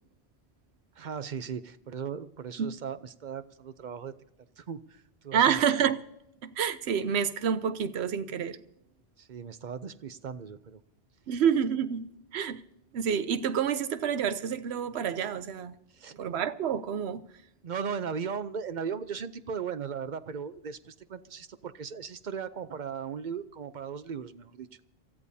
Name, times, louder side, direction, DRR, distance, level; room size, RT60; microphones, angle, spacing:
voice 1, 1.0-4.1 4.6-5.6 9.2-10.8 15.9-16.2 17.6-24.7, right 6 dB, 50° right, 0.7 m, -37 dB
voice 2, 5.3-6.0 6.4-8.6 11.3-12.6 12.9-15.8 16.2-17.2, right 8 dB, 80° right, 1.0 m, -28 dB
27.5 x 13.5 x 2.7 m
omnidirectional pair, 1.1 m